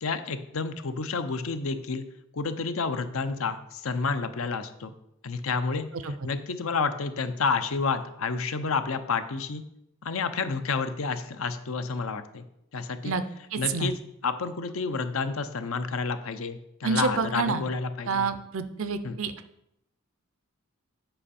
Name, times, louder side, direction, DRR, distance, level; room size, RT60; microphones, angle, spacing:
voice 1, 0.0-2.0 2.3-4.9 5.2-5.9 6.2-9.6 10.0-12.4 12.7-13.1 13.6-13.9 14.2-18.3 19.0-19.2, left 4 dB, 70° left, 10 dB, 0.6 m, -30 dB
voice 2, 13.5-13.9 16.8-17.6 18.1-19.3, right 4 dB, 65° right, 11 dB, 0.6 m, -28 dB
7.8 x 5.3 x 4.2 m, 0.81 s
head